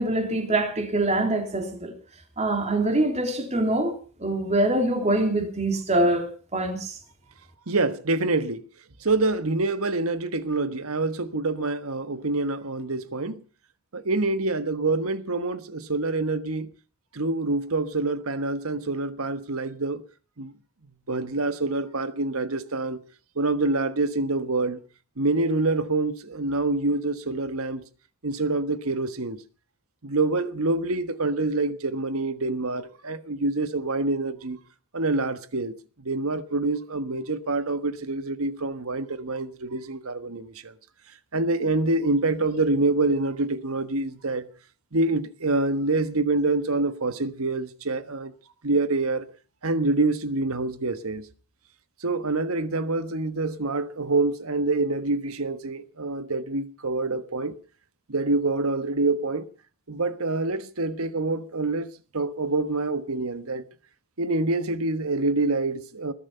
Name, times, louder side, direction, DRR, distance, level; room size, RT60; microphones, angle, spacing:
voice 1, 0.0-1.9 2.4-3.9 4.2-6.3 6.5-7.0, right 1 dB, 30° right, 3.4 m, -24 dB
voice 2, 7.7-8.6 9.0-13.4 13.9-16.7 17.1-20.0 20.4-20.5 21.1-23.0 23.3-24.8 25.2-27.8 28.2-29.4 30.0-34.6 34.9-35.7 36.0-40.7 41.3-44.5 44.9-48.3 48.6-49.3 49.6-51.3 52.0-57.5 58.1-59.5 59.9-63.6 64.2-66.1, right 2 dB, 70° right, 1.4 m, -26 dB
20.5 x 12.0 x 5.7 m
head